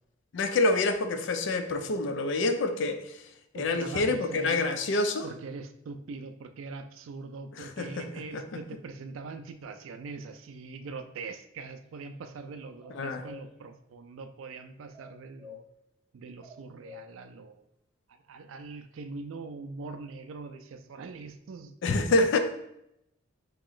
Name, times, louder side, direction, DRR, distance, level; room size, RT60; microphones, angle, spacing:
voice 1, 0.3-3.2 3.5-5.3 7.6-8.1 8.3-8.4 12.9-13.2 21.8-22.4, left 2 dB, 65° left, 8 dB, 0.4 m, -27 dB
voice 2, 3.5-4.7 5.2-15.6 16.1-17.7 18.1-21.7, right 4 dB, 90° right, 8 dB, 0.4 m, -42 dB
sound 1, 12.8-13.4 14.9-15.6 16.4-17.1, left 5 dB, 5° right, 0.5 m, -47 dB
2.9 x 2.9 x 3.8 m, 0.80 s
head